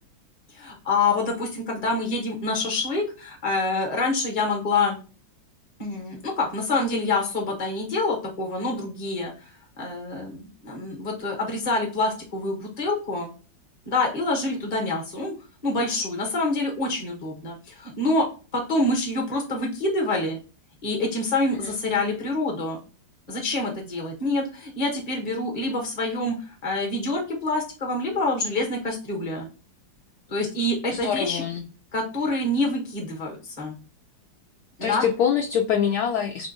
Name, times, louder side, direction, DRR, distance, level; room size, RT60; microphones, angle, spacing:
voice 1, 0.5-5.0 5.8-13.3 13.9-15.3 15.6-18.3 18.5-20.4 20.8-22.8 23.3-26.4 26.6-29.5 30.3-31.4 31.9-33.7 34.9-35.0, left 2 dB, 25° left, 1 dB, 0.9 m, -26 dB
voice 2, 30.9-31.6 34.8-36.5, left 8 dB, 75° left, 2 dB, 0.9 m, -24 dB
3.5 x 2.5 x 3.9 m, 0.35 s
omnidirectional pair, 2.1 m